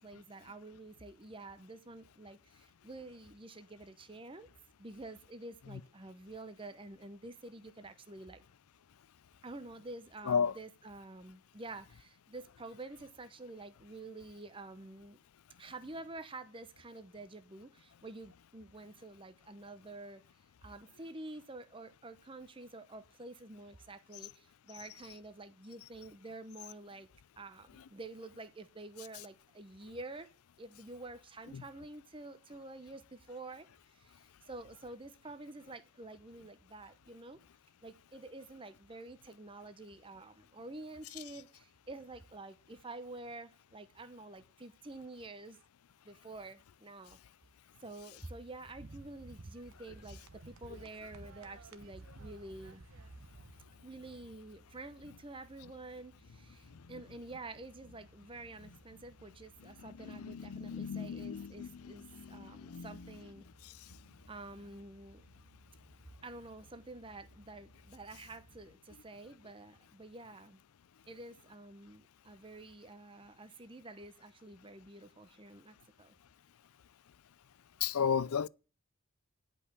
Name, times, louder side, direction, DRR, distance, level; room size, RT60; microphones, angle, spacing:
voice 1, 0.0-4.5 4.8-8.4 9.4-15.2 15.6-20.2 20.6-27.1 27.4-30.3 30.6-37.4 37.8-45.6 46.0-47.2 47.8-52.8 53.8-63.5 64.3-65.3 66.2-70.6 71.1-76.1, right 2 dB, 25° right, 0.7 m, -49 dB
sound 1, 48.7-53.7, right 2 dB, 65° right, 1.1 m, -53 dB
sound 2, 52.3-68.6, left 1 dB, 90° right, 2.1 m, -62 dB
voice 2, 60.0-63.0 77.8-78.5, left 7 dB, 75° left, 0.5 m, -34 dB
11.0 x 5.4 x 8.3 m
head